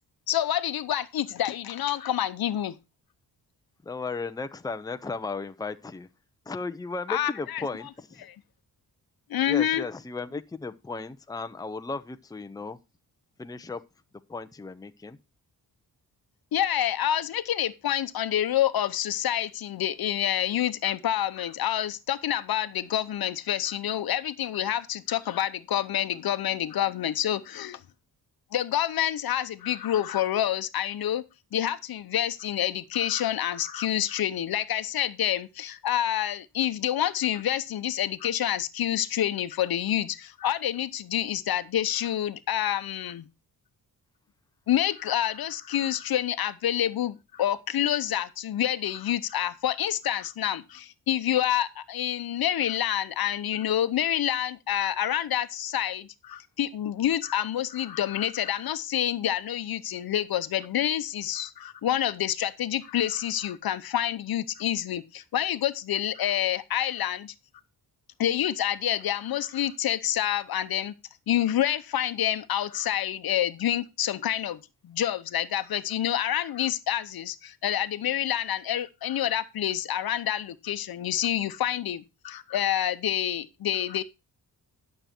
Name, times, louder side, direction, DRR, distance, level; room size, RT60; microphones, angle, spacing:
voice 1, 0.3-2.8 7.1-7.9 8.2-8.3 9.3-9.8 16.5-27.8 28.5-31.2 31.5-43.3 44.7-67.3 68.2-70.9 71.3-84.0, left 11 dB, 70° left, 0.9 m, -28 dB
voice 2, 3.8-6.1 6.5-8.2 9.5-12.8 13.4-13.8 14.3-15.2, left 3 dB, 10° left, 0.6 m, -35 dB
11.5 x 6.7 x 4.4 m
wide cardioid pair, 120°, 37 cm